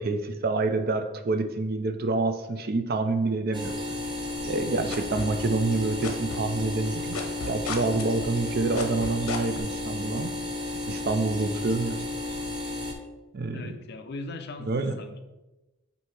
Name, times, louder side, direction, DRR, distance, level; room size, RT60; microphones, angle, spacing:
voice 1, 0.0-3.8 4.4-7.2 7.5-10.3 10.9-12.0 13.3-13.8 14.7-15.0, right 3 dB, 45° right, 7 dB, 0.5 m, -27 dB
sound 1, 3.5-12.9, left 2 dB, 20° right, 0.8 m, -33 dB
sound 2, 4.4-5.7 6.0-9.6, left 4 dB, 75° left, 0.9 m, -34 dB
voice 2, 13.5-15.2, left 2 dB, 50° left, 7 dB, 0.5 m, -39 dB
7.9 x 2.8 x 4.5 m, 1.1 s
head